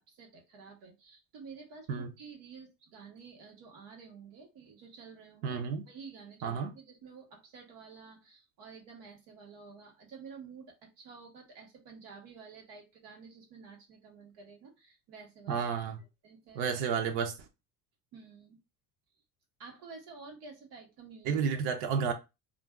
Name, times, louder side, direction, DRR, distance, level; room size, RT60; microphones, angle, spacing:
voice 1, 0.0-15.6 16.2-16.7 18.1-18.6 19.6-21.4, right 5 dB, 65° right, 1.2 m, -51 dB
voice 2, 5.4-5.8 6.4-6.7 15.5-16.0 16.6-17.3 21.3-22.1, right 6 dB, 85° right, 0.6 m, -31 dB
2.5 x 2.2 x 3.3 m
cardioid pair, 180°, 37 cm